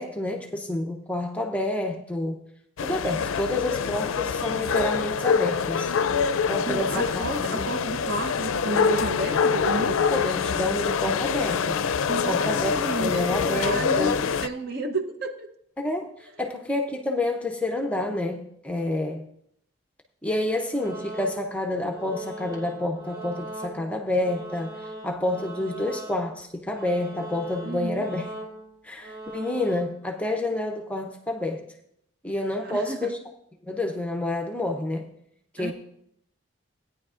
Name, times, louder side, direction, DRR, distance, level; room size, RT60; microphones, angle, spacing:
voice 1, 0.0-2.4 2.8-5.9 6.5-7.7 10.1-11.8 12.3-14.2 15.8-19.3 20.2-28.3 28.8-31.6 32.2-33.2 33.6-35.1 35.5-35.7, left 1 dB, 5° left, 0.6 m, -29 dB
sound 1, 2.8-14.5, left 6 dB, 80° left, 0.4 m, -25 dB
voice 2, 6.6-10.0 12.1-15.5 27.6-28.1 32.6-33.2 35.6-35.7, right 2 dB, 50° right, 0.8 m, -32 dB
sound 2, 20.7-21.6 21.9-26.5 26.7-29.8, right 1 dB, 20° right, 1.9 m, -40 dB
16.5 x 9.5 x 2.5 m
head